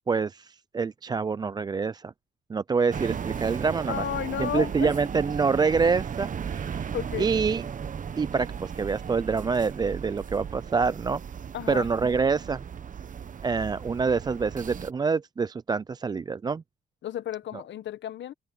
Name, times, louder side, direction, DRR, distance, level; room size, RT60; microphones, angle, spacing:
voice 1, 0.1-2.1 2.5-4.0 4.4-7.6 8.2-11.2 11.7-12.6 13.4-16.6, right 5 dB, 20° right, 0.3 m, -26 dB
sound 1, 2.9-14.9, right 7 dB, 40° right, 1.0 m, -36 dB
voice 2, 3.9-4.9 6.9-7.3 11.5-11.9 17.0-18.3, left 11 dB, 65° left, 1.1 m, -32 dB
cardioid pair, 90°, 20 cm